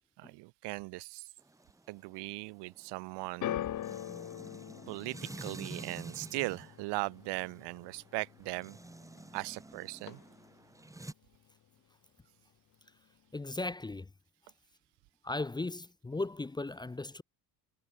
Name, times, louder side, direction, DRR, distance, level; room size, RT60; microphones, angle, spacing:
voice 1, 0.2-1.3 1.9-3.6 4.9-8.8 9.3-10.2, right 25 dB, 75° right, 1.5 m, -39 dB
sound 1, 1.4-11.1, right 2 dB, 5° right, 2.5 m, -49 dB
sound 2, 3.4-9.7 9.9-10.6 11.3-11.4, left 11 dB, 45° left, 3.8 m, -43 dB
voice 2, 13.3-14.1 15.2-17.2, left 2 dB, 10° left, 0.9 m, -36 dB
cardioid pair, 120°, 42 cm